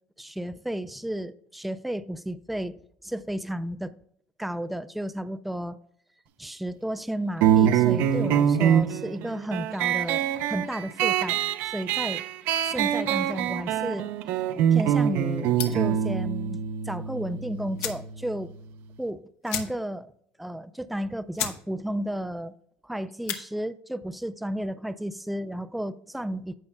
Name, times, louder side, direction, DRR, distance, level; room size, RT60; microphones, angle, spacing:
voice 1, 0.2-3.9 4.4-5.8 6.4-11.4 11.6-12.2 12.6-14.1 14.7-18.5 19.0-20.1 20.4-22.5 22.8-26.6, right 1 dB, ahead, 0.3 m, -33 dB
sound 1, 7.4-18.5, right 9 dB, 65° right, 0.7 m, -25 dB
sound 2, 15.5-15.9 17.3-17.4 17.7-18.1 18.5-18.6 18.8-19.0 19.4-20.0 20.4-20.5 21.0-21.1 21.3-21.6 22.0-22.3 23.1-23.4, left 9 dB, 75° left, 1.3 m, -33 dB
15.5 x 5.4 x 2.2 m
cardioid pair, 145°, 4 cm